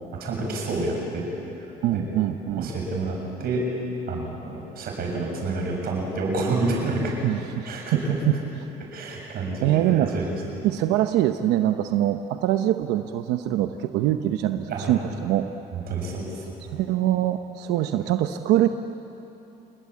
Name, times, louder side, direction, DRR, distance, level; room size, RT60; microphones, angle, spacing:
voice 1, 0.1-1.3 1.6-2.0 2.6-3.7 4.1-7.2 7.6-8.4 8.8-10.7 14.7-15.1 15.7-16.4, right 2 dB, 65° right, 0 dB, 7.5 m, -29 dB
voice 2, 1.8-2.7 7.2-8.4 9.6-10.1 10.6-15.5 16.7-18.7, right 13 dB, 85° right, 8 dB, 0.9 m, -23 dB
28.0 x 21.0 x 8.5 m, 2.9 s
cardioid pair, 110°, 17 cm